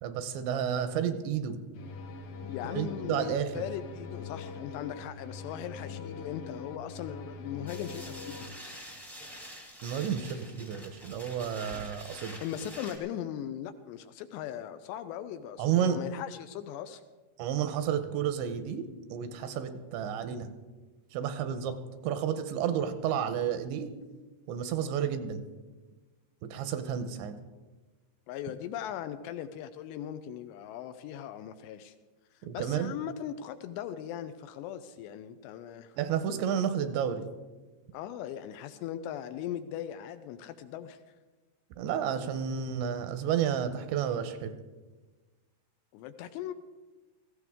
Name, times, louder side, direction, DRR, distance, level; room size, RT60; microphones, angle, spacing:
voice 1, 0.0-1.6 2.7-3.5 9.8-12.4 15.6-16.0 17.4-18.9 19.1-20.5 21.1-21.8 22.0-23.9 24.5-25.4 26.4-27.4 32.4-32.9 36.0-37.2 41.8-44.6, right 8 dB, 80° right, 10 dB, 3.0 m, -31 dB
sound 1, 1.7-8.5, left 5 dB, 65° left, 2.3 m, -42 dB
voice 2, 2.5-8.5 12.4-17.0 28.3-31.9 32.3-36.0 37.9-41.0 44.0-44.1 45.9-46.5, left 10 dB, 80° left, 10 dB, 2.6 m, -39 dB
sound 2, 7.7-13.0, equal, ahead, 0.6 m, -46 dB
18.0 x 15.0 x 3.6 m, 1.3 s
omnidirectional pair, 5.2 m